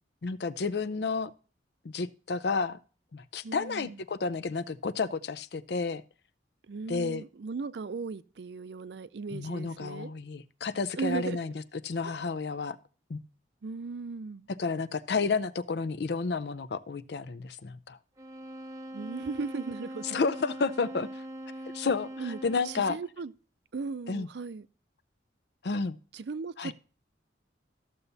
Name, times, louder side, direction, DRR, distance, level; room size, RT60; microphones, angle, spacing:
voice 1, 0.2-1.3 1.8-2.8 3.1-6.0 6.9-7.2 9.3-11.5 11.8-12.8 13.1-13.2 14.6-18.0 20.0-21.2 21.7-23.0 24.1-24.3 25.6-26.0 26.6-26.7, left 4 dB, 60° left, 0.5 m, -31 dB
voice 2, 3.4-4.0 6.6-10.1 11.0-11.4 13.6-14.5 18.9-20.2 22.2-22.4 22.6-23.3 23.7-24.7 26.1-26.7, right 4 dB, 65° right, 0.5 m, -37 dB
sound 1, 18.2-23.0, right 1 dB, 15° right, 0.7 m, -42 dB
14.0 x 6.9 x 2.7 m
head